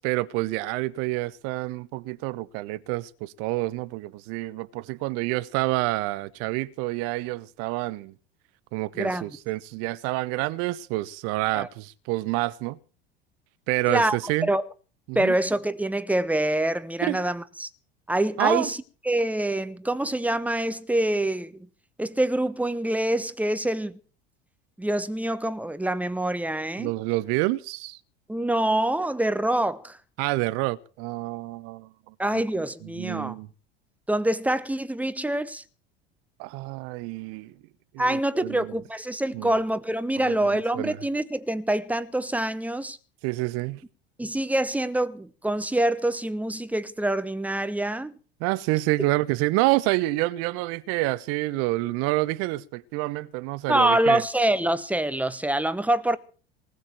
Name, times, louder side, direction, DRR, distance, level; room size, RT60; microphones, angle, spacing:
voice 1, 0.0-8.1 8.7-12.8 13.7-14.5 15.1-15.3 17.0-17.2 18.4-18.7 26.8-28.0 30.2-32.4 32.9-33.5 36.4-37.5 37.9-38.8 39.3-39.6 40.2-41.0 43.2-43.8 48.4-54.2, right 19 dB, 50° right, 1.0 m, -28 dB
voice 2, 15.1-17.7 18.1-18.8 19.0-21.6 22.0-24.0 24.8-26.9 28.3-30.0 32.2-33.4 34.1-35.6 38.0-43.0 44.2-48.1 53.7-56.2, right 1 dB, 5° right, 1.1 m, -25 dB
20.0 x 6.7 x 9.2 m
figure-of-eight pair, 75°, 31 cm